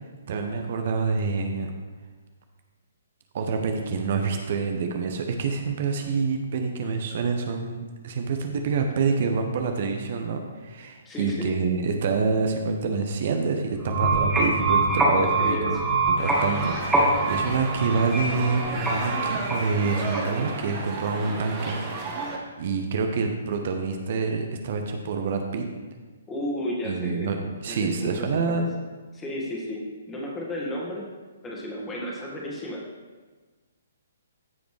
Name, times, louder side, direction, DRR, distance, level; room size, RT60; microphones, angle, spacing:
voice 1, 0.3-1.7 3.3-15.8 16.1-21.8 22.6-25.7 26.8-28.7, right 4 dB, 50° right, 4 dB, 0.8 m, -27 dB
voice 2, 11.1-11.6 15.4-15.8 26.3-27.3 27.7-28.6 29.1-29.8 30.1-31.1 31.4-32.8, left 1 dB, 15° left, -3 dB, 1.9 m, -33 dB
sound 1, 13.7-20.5, right 2 dB, 5° right, 1.7 m, -24 dB
sound 2, 16.2-22.4, right 3 dB, 30° right, 1.6 m, -33 dB
15.0 x 5.1 x 3.3 m, 1.3 s
figure-of-eight pair, 125°, 0 cm